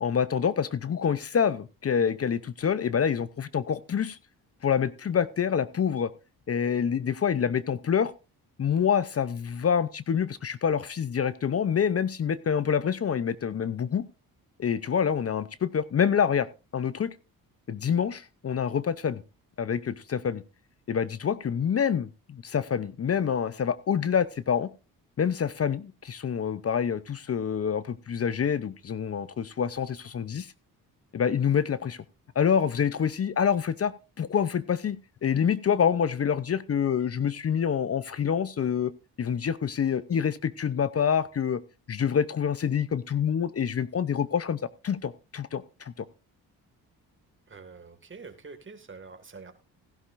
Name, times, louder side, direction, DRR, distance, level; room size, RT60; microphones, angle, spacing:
voice 1, 0.0-4.2 4.6-6.1 6.5-8.1 8.6-14.0 14.6-16.5 16.7-17.2 17.7-19.2 19.6-20.4 20.9-24.7 25.2-30.5 31.1-32.0 32.4-38.9 39.2-41.6 41.9-46.0, left 7 dB, 40° left, 16 dB, 0.7 m, -27 dB
voice 2, 47.5-49.5, right 4 dB, 30° right, 7 dB, 2.0 m, -46 dB
16.5 x 11.0 x 2.6 m, 0.29 s
cardioid pair, 75°, 38 cm